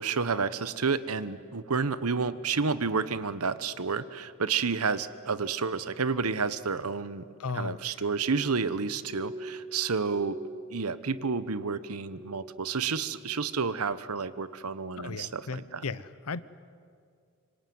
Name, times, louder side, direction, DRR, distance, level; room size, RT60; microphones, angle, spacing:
voice 1, 0.0-7.2 7.5-10.4 10.7-15.8, right 5 dB, 85° right, 15 dB, 1.1 m, -30 dB
voice 2, 7.4-7.8 15.0-16.4, left 4 dB, 80° left, 16 dB, 0.9 m, -35 dB
Glass, 8.8-12.6 12.9-13.5 13.9-14.5 15.0-15.3, equal, 65° left, 4.1 m, -45 dB
25.5 x 25.0 x 9.4 m, 2.2 s
head